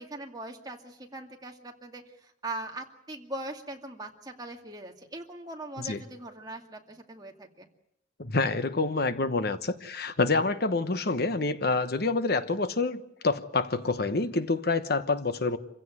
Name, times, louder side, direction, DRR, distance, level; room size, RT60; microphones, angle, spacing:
voice 1, 0.0-7.7, right 2 dB, 20° right, 2.3 m, -41 dB
voice 2, 8.2-15.6, left 3 dB, 60° left, 1.1 m, -27 dB
26.5 x 16.0 x 9.4 m
head